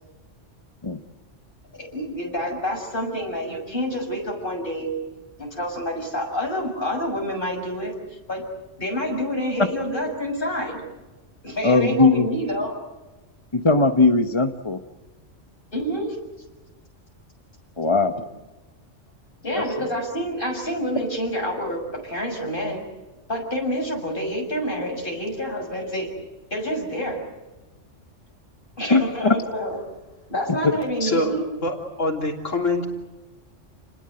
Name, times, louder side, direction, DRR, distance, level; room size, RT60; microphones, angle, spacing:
voice 1, 1.7-4.9 5.4-7.9 8.3-8.4 8.8-10.8 11.4-12.8 15.7-16.2 19.4-22.8 23.3-26.1 26.5-27.2 28.8-29.8 30.3-31.5, equal, 45° left, 1 dB, 7.0 m, -28 dB
voice 2, 11.6-12.3 13.5-14.8 17.8-18.1 19.5-19.6 28.9-29.3 30.6-30.7, left 3 dB, 25° left, 7 dB, 1.1 m, -19 dB
voice 3, 31.0-31.3 31.6-32.9, left 2 dB, 80° left, 1 dB, 3.7 m, -25 dB
30.0 x 20.5 x 7.8 m, 1.1 s
omnidirectional pair, 1.3 m